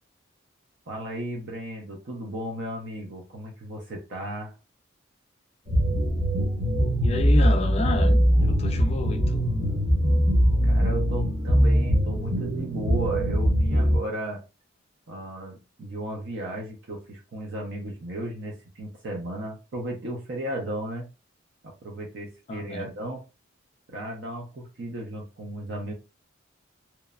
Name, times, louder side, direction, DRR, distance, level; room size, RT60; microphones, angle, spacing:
voice 1, 0.9-4.5 10.6-14.4 15.1-21.1 21.6-23.2 23.9-25.9, right 1 dB, 55° right, 0.5 m, -35 dB
sound 1, 5.7-14.0, equal, 35° right, 0.9 m, -22 dB
voice 2, 7.0-8.2 8.5-9.5 22.5-22.9, left 3 dB, 30° left, 0.3 m, -30 dB
2.9 x 2.1 x 2.3 m
head